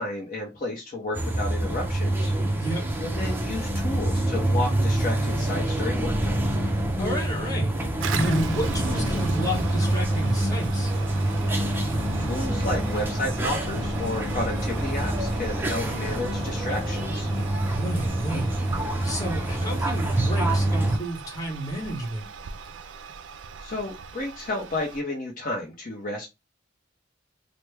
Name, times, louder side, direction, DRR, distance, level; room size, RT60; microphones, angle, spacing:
voice 1, 0.0-2.3 3.0-6.4 12.2-17.3 23.6-26.3, left 2 dB, 45° left, 0.7 m, -32 dB
sound 1, 1.1-21.0, right 1 dB, 10° right, 0.5 m, -26 dB
voice 2, 7.0-7.7 8.1-10.9 15.7-16.0 17.6-18.5 19.0-22.3, right 1 dB, 20° left, 1.2 m, -31 dB
Toilet flush, 8.0-25.0, right 6 dB, 75° right, 0.4 m, -40 dB
3.3 x 2.1 x 3.2 m
head